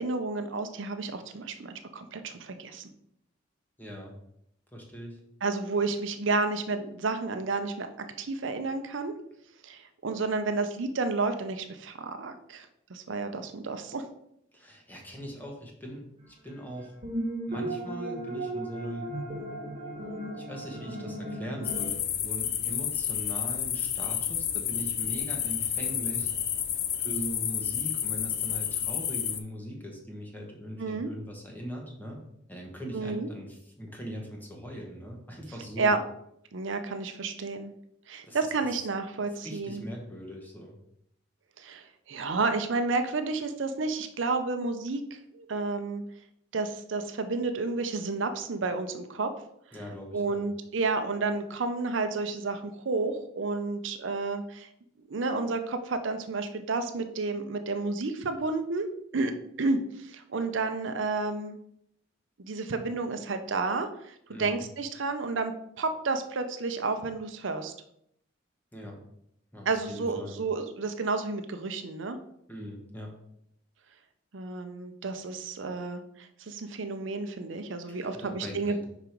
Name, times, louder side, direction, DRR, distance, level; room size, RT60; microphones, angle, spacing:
voice 1, 0.0-2.9 5.4-9.1 9.6-14.0 30.8-31.1 32.9-33.3 35.8-36.0 36.5-37.7 38.1-39.8 41.6-45.0 45.3-46.0 46.5-49.3 50.1-54.7 55.1-58.9 59.1-59.3 59.6-61.6 62.4-65.5 65.8-67.7 69.7-72.2 74.3-78.9, right 3 dB, 70° right, 7 dB, 0.6 m, -31 dB
voice 2, 3.8-4.2 4.7-5.2 14.5-16.9 17.5-19.1 20.4-26.3 26.7-32.2 32.5-36.0 38.2-38.7 39.3-40.8 49.7-50.4 64.3-64.7 68.7-69.0 69.5-70.4 72.5-73.2 77.9-78.9, equal, 10° left, 0 dB, 1.2 m, -41 dB
sound 1, 17.0-21.9, right 1 dB, 35° right, 1.6 m, -35 dB
sound 2, 21.6-29.4, left 10 dB, 50° left, 0.6 m, -30 dB
5.4 x 4.9 x 4.5 m, 0.74 s
head